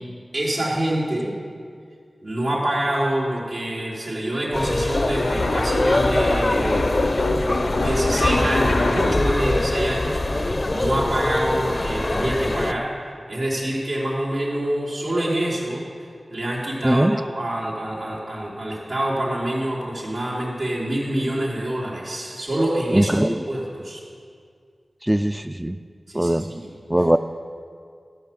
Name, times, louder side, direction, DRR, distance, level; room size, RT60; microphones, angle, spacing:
voice 1, 0.3-1.3 2.2-6.9 7.7-12.9 13.3-24.0 26.1-26.7, right 1 dB, 85° right, -7 dB, 3.3 m, -26 dB
sound 1, 4.5-9.4, left 2 dB, 90° left, 0.8 m, -25 dB
sound 2, 4.5-12.7, left 2 dB, 45° left, 0.6 m, -23 dB
voice 2, 16.8-17.2 22.9-23.4 25.0-25.8 26.1-26.4 26.9-27.2, right 1 dB, 15° right, 9 dB, 0.4 m, -20 dB
13.5 x 5.7 x 7.6 m, 2.2 s
cardioid pair, 40°, 0 cm